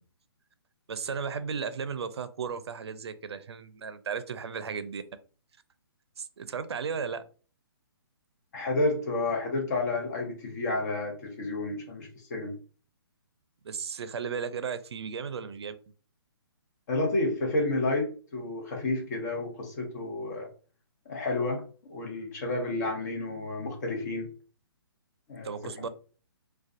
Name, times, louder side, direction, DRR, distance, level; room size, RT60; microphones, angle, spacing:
voice 1, 0.9-5.0 6.2-7.2 13.6-15.7 25.4-25.9, right 6 dB, 85° right, 12 dB, 0.4 m, -35 dB
voice 2, 8.5-12.6 16.9-20.5 21.1-21.6 21.9-24.3 25.3-25.9, left 2 dB, 45° left, 1 dB, 0.8 m, -30 dB
2.4 x 2.2 x 2.4 m, 0.38 s
hypercardioid pair, 150°, 13 cm